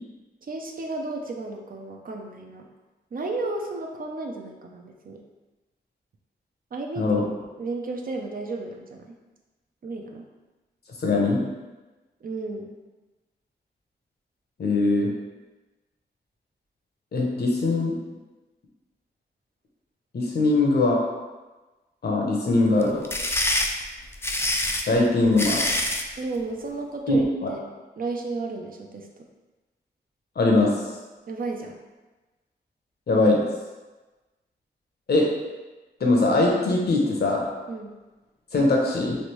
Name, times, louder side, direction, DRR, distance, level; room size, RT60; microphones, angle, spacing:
voice 1, 0.4-2.7 3.1-5.2 6.7-7.1 7.6-9.1 9.8-10.2 12.2-12.8 26.2-27.6 28.0-29.1 31.3-31.8 37.7-37.9, right 3 dB, 50° right, 1 dB, 0.5 m, -33 dB
voice 2, 11.0-11.4 14.6-15.1 17.1-17.9 20.1-21.0 22.0-23.0 24.9-25.7 27.1-27.5 30.4-30.7 33.1-33.4 35.1-35.3 36.0-37.5 38.5-39.2, left 2 dB, 65° left, -1 dB, 0.8 m, -21 dB
sound 1, 22.8-26.1, left 1 dB, 15° left, 0.3 m, -25 dB
3.2 x 2.6 x 3.0 m, 1.2 s
cardioid pair, 65°, 18 cm